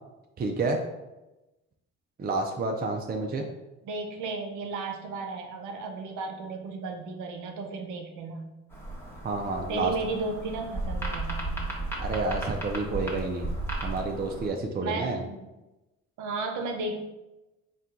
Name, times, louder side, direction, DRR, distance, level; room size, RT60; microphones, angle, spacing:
voice 1, 0.4-0.8 2.2-3.4 9.2-9.9 12.0-13.5 13.8-15.2, right 3 dB, 30° right, 3 dB, 0.5 m, -29 dB
voice 2, 3.8-8.5 9.7-11.8 14.8-15.4 16.2-17.0, right 3 dB, 80° right, 3 dB, 0.7 m, -34 dB
sound 1, 8.7-14.5, right 2 dB, 10° left, 1.1 m, -34 dB
4.3 x 2.3 x 3.7 m, 1.0 s
cardioid pair, 90°, 30 cm